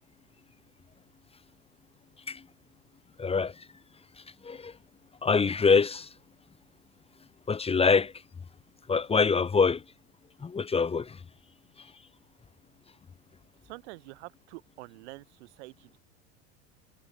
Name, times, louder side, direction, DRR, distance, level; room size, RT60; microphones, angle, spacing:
voice 1, 3.2-3.7 4.4-4.7 5.2-6.1 7.5-8.1 8.9-9.8 10.4-11.2, left 5 dB, 15° left, 1.2 m, -25 dB
voice 2, 13.6-16.0, right 23 dB, 75° right, 4.6 m, -47 dB
supercardioid pair, 120°, 34 cm